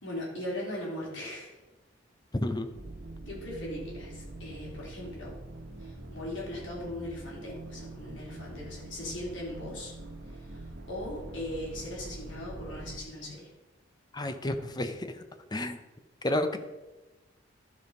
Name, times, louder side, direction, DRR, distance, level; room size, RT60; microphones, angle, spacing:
voice 1, 0.0-1.5 3.3-5.3 5.8-9.9 10.3-10.6 10.9-13.5, left 1 dB, 75° left, -4 dB, 3.4 m, -39 dB
sound 1, 2.7-13.0, right 2 dB, 80° right, 1.1 m, -44 dB
voice 2, 14.1-15.1 15.5-15.8 16.2-16.6, left 1 dB, 20° left, 8 dB, 0.6 m, -30 dB
12.0 x 5.3 x 5.3 m, 1.1 s
head